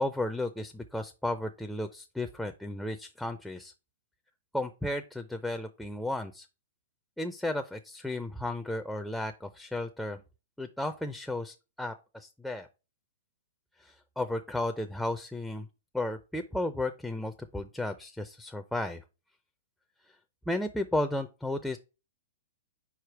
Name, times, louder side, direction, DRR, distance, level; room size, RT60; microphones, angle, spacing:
voice 1, 0.0-3.7 4.5-6.5 7.2-10.2 10.6-12.7 13.8-15.7 15.9-19.0 20.5-21.8, left 1 dB, ahead, 6 dB, 0.5 m, -34 dB
4.9 x 4.5 x 4.5 m, 0.30 s
hypercardioid pair, 135°, 0 cm